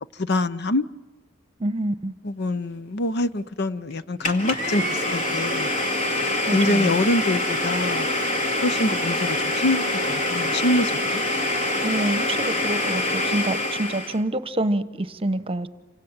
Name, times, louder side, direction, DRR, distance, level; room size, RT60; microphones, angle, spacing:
voice 1, 0.2-0.8 2.2-5.7 6.5-8.2 8.6-11.2, left 2 dB, 55° left, 0.8 m, -25 dB
voice 2, 1.6-2.1 6.5-6.9 11.8-15.7, right 1 dB, 30° right, 1.0 m, -27 dB
Domestic sounds home sounds, 4.2-14.2, left 1 dB, 40° left, 2.3 m, -25 dB
29.0 x 26.0 x 7.4 m
head